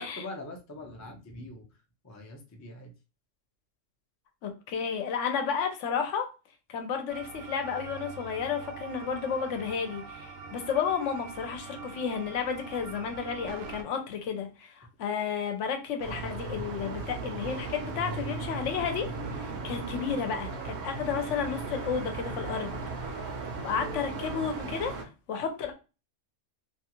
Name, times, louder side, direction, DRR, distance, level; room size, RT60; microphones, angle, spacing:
voice 1, 0.0-1.6 2.0-2.9, left 2 dB, 25° left, 0.3 m, -43 dB
voice 2, 4.4-6.3 6.7-19.1 19.4-22.8 23.0-23.3 23.6-25.8, left 6 dB, 75° left, 0.9 m, -32 dB
sound 1, 7.1-13.8, right 5 dB, 90° right, 1.0 m, -44 dB
sound 2, 16.0-25.0, right 3 dB, 65° right, 0.9 m, -36 dB
2.7 x 2.3 x 2.8 m
omnidirectional pair, 1.3 m